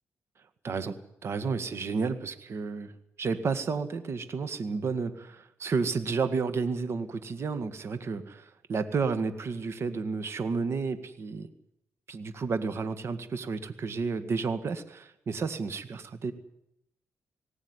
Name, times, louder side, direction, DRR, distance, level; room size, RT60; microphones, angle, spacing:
voice 1, 0.6-2.9 3.2-11.5 12.1-16.3, right 4 dB, 55° right, 10 dB, 1.9 m, -31 dB
19.5 x 17.0 x 9.8 m, 0.79 s
cardioid pair, 90°, 5 cm